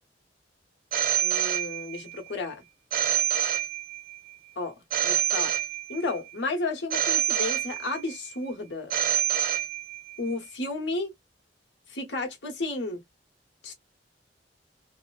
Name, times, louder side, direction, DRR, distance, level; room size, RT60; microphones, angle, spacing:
Telephone, 0.9-2.2 2.9-4.2 4.9-6.2 6.9-8.2 8.9-10.2, right 10 dB, 50° right, 0.5 m, -27 dB
voice 1, 1.2-2.6 4.6-5.5 5.9-8.9 10.2-11.1 11.9-13.0 13.6-13.7, left 2 dB, 80° left, 1.3 m, -32 dB
3.0 x 2.1 x 2.4 m
head